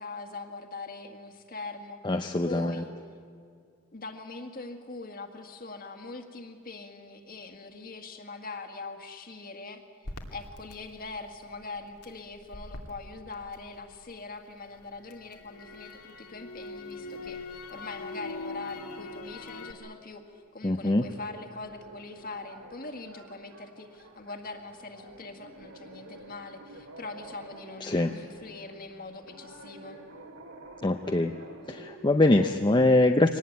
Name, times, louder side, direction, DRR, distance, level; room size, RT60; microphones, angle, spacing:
voice 1, 0.0-2.0 2.5-2.9 3.9-9.8 10.3-20.2 20.5-30.0, left 3 dB, 40° left, 6 dB, 1.8 m, -42 dB
voice 2, 2.0-2.8 20.6-21.0 27.8-28.1 30.8-31.3 31.7-33.4, left 2 dB, 20° left, 6 dB, 0.6 m, -23 dB
Crackle, 10.0-14.2 14.6-19.7, left 2 dB, 85° left, 2.2 m, -42 dB
sound 1, 21.1-32.5, right 2 dB, 65° right, 2.6 m, -49 dB
24.0 x 19.0 x 9.3 m, 2.3 s
head